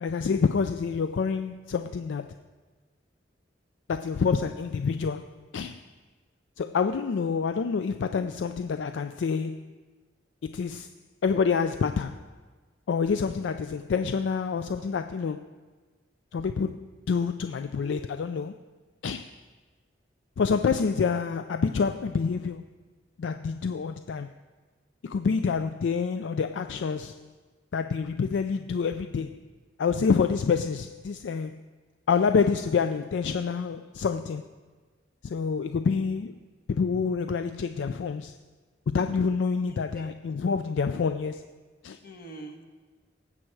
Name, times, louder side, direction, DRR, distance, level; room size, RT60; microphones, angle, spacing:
voice 1, 0.0-2.4 3.9-5.9 6.6-9.7 10.4-10.9 11.2-12.3 12.9-15.5 16.3-18.6 19.0-19.4 20.4-22.7 23.2-24.3 25.0-27.3 27.7-29.5 29.8-31.6 32.1-34.4 35.2-36.4 36.7-38.4 38.9-41.5 41.8-42.0, left 5 dB, 75° left, 0.4 m, -27 dB
voice 2, 39.7-40.1 42.0-42.6, right 2 dB, 55° left, 1.4 m, -44 dB
19.0 x 7.7 x 4.6 m
head